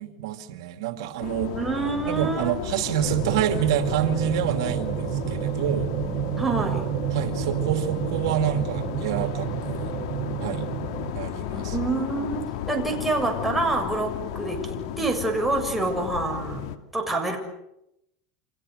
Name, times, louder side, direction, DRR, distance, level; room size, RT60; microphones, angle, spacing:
voice 1, 0.0-1.6 2.1-5.9 7.1-9.9 10.4-10.6 11.1-11.7, right 9 dB, 80° right, 7 dB, 2.6 m, -27 dB
sound 1, 1.2-16.8, left 11 dB, 75° left, 2.5 m, -34 dB
voice 2, 1.6-2.7 6.3-6.9 11.5-17.4, right 3 dB, 5° right, 2 dB, 7.0 m, -27 dB
sound 2, 3.0-11.1, right 16 dB, 50° right, 1.2 m, -30 dB
30.0 x 26.5 x 6.6 m, 0.83 s
supercardioid pair, 135°, 3 cm